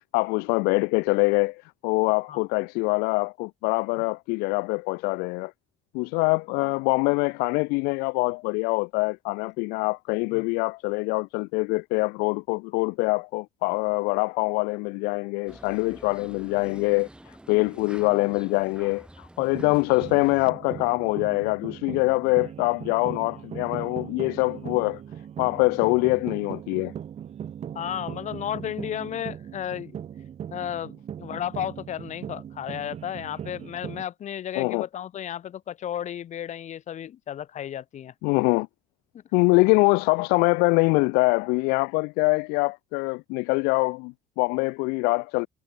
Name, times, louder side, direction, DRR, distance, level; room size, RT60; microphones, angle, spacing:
voice 1, 0.1-5.5 5.9-25.0 25.4-26.9 34.6-34.8 38.2-38.7 39.3-45.5, left 28 dB, 65° left, 0.4 m, -24 dB
sound 1, 15.5-20.5, right 1 dB, 5° right, 1.8 m, -47 dB
sound 2, 19.4-34.0, right 9 dB, 40° right, 0.8 m, -39 dB
voice 2, 27.7-29.9 30.5-38.1 39.1-39.2, left 10 dB, 45° left, 1.1 m, -33 dB
hypercardioid pair, 65°, 17 cm